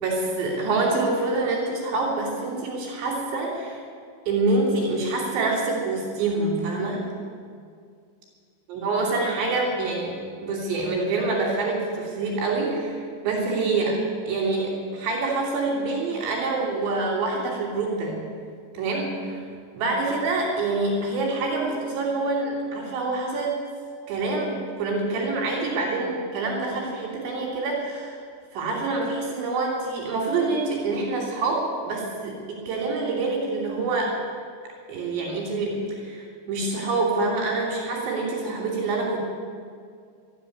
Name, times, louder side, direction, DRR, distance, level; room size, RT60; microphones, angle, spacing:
voice 1, 0.0-3.8 4.3-7.1 8.7-18.2 18.7-19.5 19.7-23.7 24.1-28.2 28.5-34.1 34.9-39.3, right 3 dB, 65° right, -3 dB, 5.0 m, -26 dB
14.0 x 9.9 x 9.9 m, 2.2 s
omnidirectional pair, 5.7 m